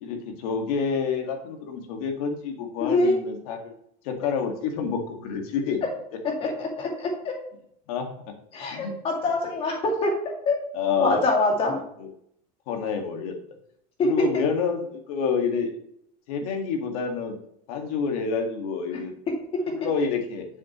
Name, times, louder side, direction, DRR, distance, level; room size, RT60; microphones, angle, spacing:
voice 1, 0.0-3.7 4.0-5.9 7.9-8.1 8.7-8.9 10.7-11.3 12.0-12.1 12.7-13.4 14.0-15.7 16.3-17.3 17.7-19.1 19.7-20.5, left 5 dB, 75° left, 3 dB, 2.0 m, -28 dB
voice 2, 2.8-3.2 5.8-5.9 6.2-7.4 8.5-10.6 11.0-11.8 14.0-14.3 19.3-19.7, left 2 dB, 30° left, 1 dB, 2.4 m, -25 dB
8.4 x 7.2 x 3.1 m, 0.71 s
cardioid pair, 165°, 18 cm